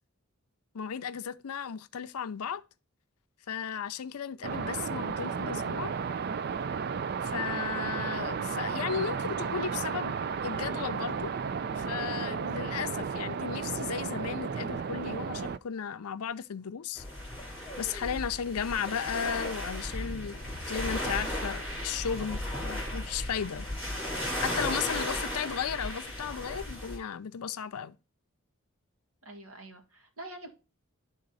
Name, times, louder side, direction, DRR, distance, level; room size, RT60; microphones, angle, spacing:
voice 1, 0.7-2.6 3.5-5.9 7.2-10.2 10.4-11.3 11.8-17.0 17.8-23.7 24.4-28.0, left 7 dB, 90° left, 0.5 m, -35 dB
sound 1, 4.4-15.6, right 6 dB, 45° right, 0.3 m, -33 dB
sound 2, 17.0-27.0, left 1 dB, 5° right, 3.5 m, -35 dB
voice 2, 29.2-30.5, right 1 dB, 80° right, 1.9 m, -45 dB
10.5 x 3.9 x 4.0 m
head